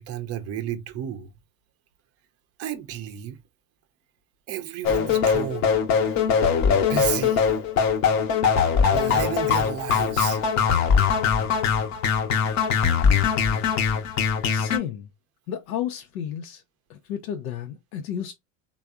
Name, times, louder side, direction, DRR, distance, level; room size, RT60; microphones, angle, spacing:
voice 1, 0.0-1.3 2.6-3.4 4.5-5.7 6.7-7.5 8.9-10.4, right 11 dB, 35° right, 0.5 m, -32 dB
sound 1, 4.8-14.8, left 6 dB, 40° left, 0.7 m, -21 dB
voice 2, 14.5-15.1 15.5-16.6 16.9-18.3, left 10 dB, 85° left, 0.6 m, -32 dB
3.3 x 2.0 x 2.2 m
supercardioid pair, 95°, 42 cm